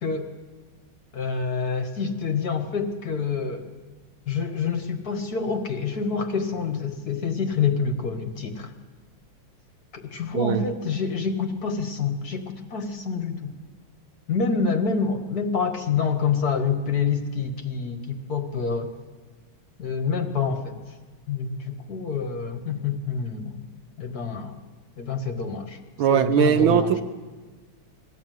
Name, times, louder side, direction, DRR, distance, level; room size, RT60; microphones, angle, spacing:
voice 1, 1.1-3.7 4.3-8.7 9.9-13.5 14.3-18.9 19.8-20.8 21.3-23.7 24.0-24.6 25.0-25.8 26.1-27.0, left 5 dB, 50° left, 6 dB, 1.7 m, -27 dB
voice 2, 26.0-27.0, right 9 dB, 70° right, 9 dB, 1.6 m, -20 dB
21.5 x 14.5 x 9.2 m, 1.3 s
omnidirectional pair, 2.4 m